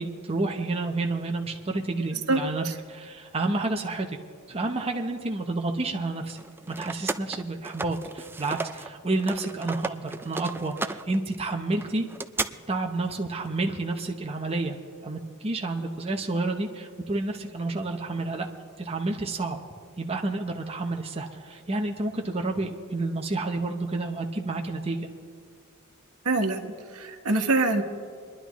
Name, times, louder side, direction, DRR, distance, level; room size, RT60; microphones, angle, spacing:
voice 1, 0.0-4.2 4.5-6.4 6.7-12.1 12.7-14.8 15.0-18.5 18.8-19.6 20.0-25.1, right 2 dB, 30° right, 2 dB, 0.8 m, -30 dB
sound 1, 6.3-8.9 9.2-12.5, right 3 dB, 10° right, 0.3 m, -34 dB
voice 2, 26.2-27.8, right 2 dB, 85° right, 5 dB, 1.2 m, -25 dB
27.0 x 11.0 x 3.1 m, 2.2 s
head